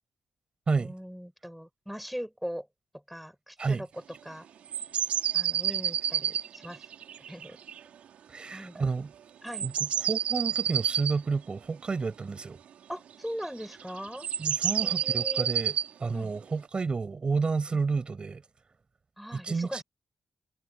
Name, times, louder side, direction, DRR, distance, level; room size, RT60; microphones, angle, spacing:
voice 1, 0.8-2.7 3.1-3.9 4.2-4.5 5.3-6.9 7.3-7.6 8.5-8.8 9.4-9.7 12.9-14.3 14.8-15.5 16.1-16.3 17.7-17.8 19.2-19.8, equal, ahead, 7.2 m, -40 dB
sound 1, 4.7-7.8 9.5-11.2 13.4-13.7 14.1-15.9, right 9 dB, 85° right, 5.0 m, -29 dB
voice 2, 8.3-9.1 9.6-12.6 14.4-18.4 19.3-19.8, right 4 dB, 45° right, 6.4 m, -30 dB
cardioid pair, 55°, 2 cm